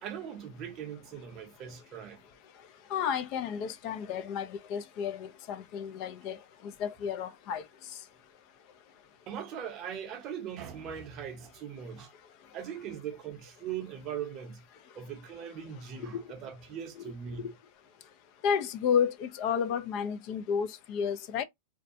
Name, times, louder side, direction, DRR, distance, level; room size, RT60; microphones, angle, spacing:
voice 1, 0.0-2.2 9.3-12.1 12.5-14.6 14.9-17.5, right 8 dB, 30° right, 0.6 m, -40 dB
voice 2, 2.9-6.4 6.8-7.6 16.0-16.2 18.4-21.4, left 7 dB, 40° left, 0.3 m, -31 dB
2.5 x 2.1 x 2.5 m
supercardioid pair, 160°, 0 cm